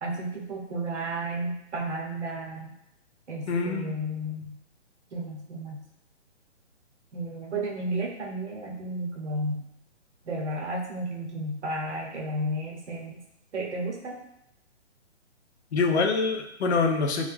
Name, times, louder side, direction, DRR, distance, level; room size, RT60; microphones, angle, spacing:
voice 1, 0.0-2.7 3.3-4.6 5.1-5.8 7.1-9.6 10.2-13.2 13.5-14.2, right 1 dB, 70° right, -1 dB, 0.8 m, -33 dB
voice 2, 3.5-4.0 15.7-17.3, left 4 dB, 65° left, 4 dB, 0.5 m, -25 dB
2.4 x 2.2 x 3.1 m, 0.79 s
hypercardioid pair, 170°, 36 cm